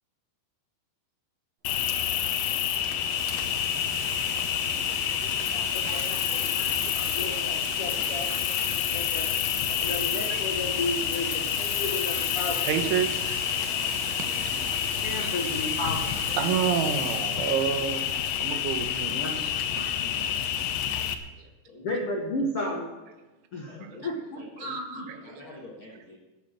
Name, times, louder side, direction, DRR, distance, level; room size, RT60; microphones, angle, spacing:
Cricket, 1.6-21.1, left 9 dB, 90° left, 2.0 m, -28 dB
Water tap faucet, 2.4-2.5 3.0-17.5 18.4-18.5, right 4 dB, 70° right, 5.2 m, -40 dB
voice 1, 5.1-7.5 8.0-8.4 9.0-9.1 9.7-10.4 12.6-13.8 14.3-14.8 15.2-15.3 15.7-15.8 16.4-19.2 19.9-20.0 20.9-21.1 24.6-24.8 25.1-25.4, right 9 dB, 90° right, 7 dB, 3.6 m, -32 dB
voice 2, 5.7-6.7 7.1-9.3 9.8-12.6 15.0-16.2 19.1-20.3 21.8-22.9 23.5-25.1, left 1 dB, 70° left, -1 dB, 1.4 m, -34 dB
voice 3, 13.6-14.2 21.6-21.9 23.7-26.2, left 1 dB, 50° left, -3 dB, 1.6 m, -48 dB
14.0 x 10.5 x 6.6 m, 1.1 s
omnidirectional pair, 5.3 m